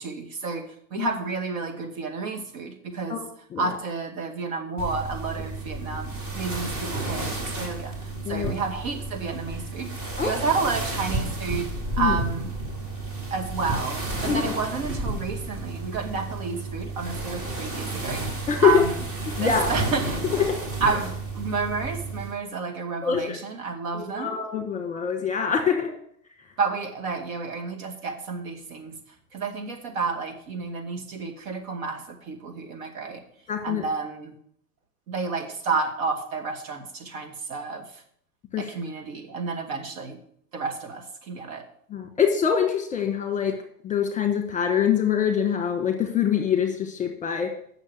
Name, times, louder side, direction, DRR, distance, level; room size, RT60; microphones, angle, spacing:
voice 1, 0.0-3.2 3.6-11.7 12.0-12.5 13.3-19.0 19.4-20.2 20.8-24.4 26.6-29.0 29.3-33.2 33.6-34.3 35.1-38.0 38.6-40.2 40.5-41.7, right 4 dB, 60° right, 5 dB, 2.2 m, -30 dB
sound 1, 4.8-22.3, right 2 dB, 30° right, 2.7 m, -32 dB
voice 2, 18.5-18.8 19.4-19.7 20.3-20.4 23.0-23.4 23.9-25.9 33.5-33.8 38.5-38.7 41.9-43.5 43.8-47.5, left 7 dB, 15° left, 5 dB, 1.4 m, -24 dB
8.5 x 6.5 x 6.6 m, 0.65 s
hypercardioid pair, 120°, 46 cm